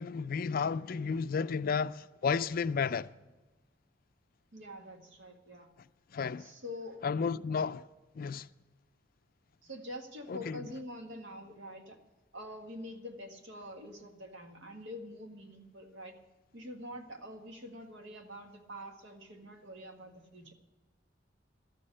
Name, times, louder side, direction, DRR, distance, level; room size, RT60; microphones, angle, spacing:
voice 1, 0.0-3.1 6.1-6.5 7.0-7.9 8.2-8.5 10.3-10.6, left 5 dB, 50° left, 0.4 m, -32 dB
voice 2, 4.5-5.7 6.4-7.0 9.6-12.0 12.3-16.2 16.5-20.5, left 1 dB, 80° right, 1.7 m, -46 dB
12.5 x 7.6 x 9.8 m
head